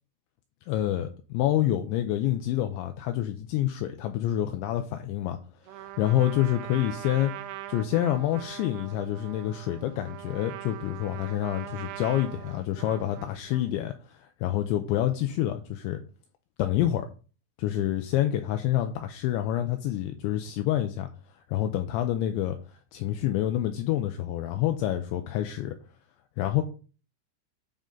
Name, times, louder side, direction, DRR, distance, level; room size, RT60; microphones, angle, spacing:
voice 1, 0.7-5.4 5.7-7.3 7.7-16.0 16.6-17.1 17.6-21.1 21.4-25.7 26.4-26.6, left 12 dB, 85° left, 7 dB, 2.7 m, -27 dB
Trumpet, 5.7-13.8, right 13 dB, 80° right, 2.9 m, -42 dB
9.8 x 5.1 x 3.8 m, 0.36 s
omnidirectional pair, 5.8 m